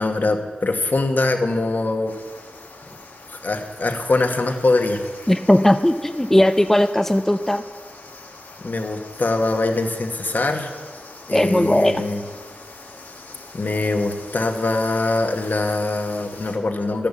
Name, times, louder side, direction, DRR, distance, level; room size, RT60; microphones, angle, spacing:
voice 1, 0.0-2.1 3.3-5.0 8.6-10.7 11.3-12.2 13.5-17.1, left 2 dB, 60° left, 5 dB, 1.3 m, -22 dB
sound 1, 2.1-16.6, left 3 dB, 90° left, 1.5 m, -43 dB
voice 2, 5.3-7.6 11.3-12.0, left 1 dB, 10° left, 9 dB, 0.4 m, -17 dB
11.0 x 10.5 x 7.2 m, 1.5 s
wide cardioid pair, 55°, 3 cm